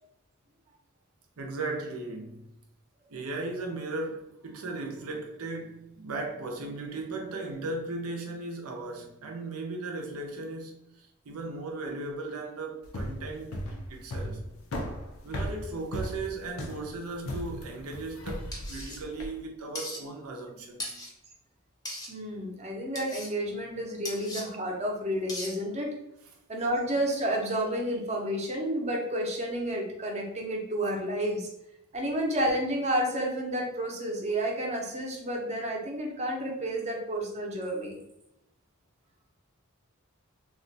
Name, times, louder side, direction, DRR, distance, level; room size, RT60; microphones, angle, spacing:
voice 1, 1.4-2.5 3.1-14.4 14.7-14.8 15.2-21.0 26.2-26.4, right 2 dB, 85° right, 0.6 m, -37 dB
sound 1, 12.8-19.4, equal, 70° left, 0.5 m, -36 dB
sound 2, 18.5-19.0 19.8-20.0 20.8-21.1 21.9-22.1 23.0-23.3 24.1-24.4 25.3-25.5, left 1 dB, 20° left, 0.6 m, -38 dB
voice 2, 22.1-25.9 26.5-31.5 31.9-38.0, right 1 dB, 30° right, 0.7 m, -30 dB
2.4 x 2.2 x 3.8 m
head